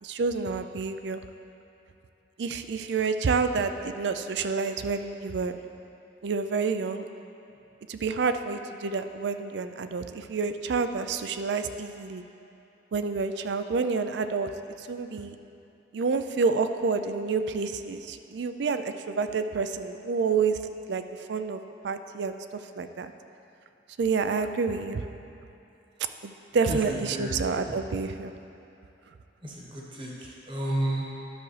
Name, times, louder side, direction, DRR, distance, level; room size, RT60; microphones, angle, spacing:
voice 1, 0.0-1.2 2.4-5.6 6.2-7.1 7.9-12.2 12.9-14.5 14.8-15.4 15.9-20.6 20.9-21.0 21.3-22.3 22.8-23.1 24.0-25.0 26.2-28.3, right 4 dB, 70° right, 9 dB, 0.4 m, -28 dB
voice 2, 26.6-27.3 27.6-27.8 29.4-31.1, right 1 dB, 30° right, -4 dB, 1.2 m, -32 dB
11.0 x 6.7 x 3.2 m, 2.8 s
head